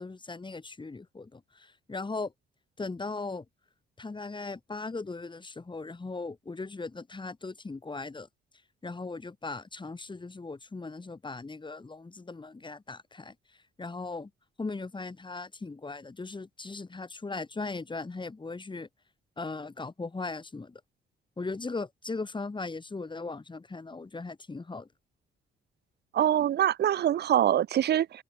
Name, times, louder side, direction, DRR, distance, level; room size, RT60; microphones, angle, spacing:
voice 1, 0.0-2.3 2.8-3.4 4.0-8.3 8.8-13.3 13.8-14.3 14.6-18.9 19.4-20.8 21.4-24.9, left 3 dB, 25° left, 5.8 m, -38 dB
voice 2, 26.1-28.2, right 11 dB, 55° right, 0.7 m, -24 dB
cardioid pair, 90°, 20 cm